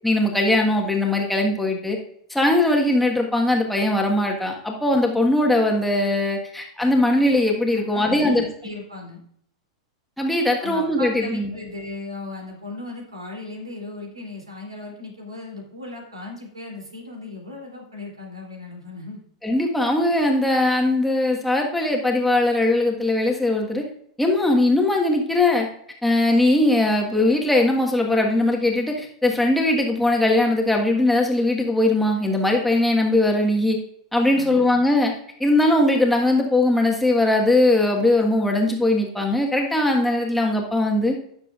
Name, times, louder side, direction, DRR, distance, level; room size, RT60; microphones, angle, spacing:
voice 1, 0.0-2.0 2.3-8.5 10.2-11.5 19.4-23.8 24.2-25.7 26.0-33.8 34.1-35.1 35.4-41.2, left 1 dB, 5° left, 0 dB, 1.5 m, -20 dB
voice 2, 7.7-9.2 10.6-19.2 34.3-34.7, left 2 dB, 80° right, 0 dB, 3.1 m, -36 dB
16.0 x 6.9 x 2.5 m, 0.66 s
figure-of-eight pair, 95°, 3 cm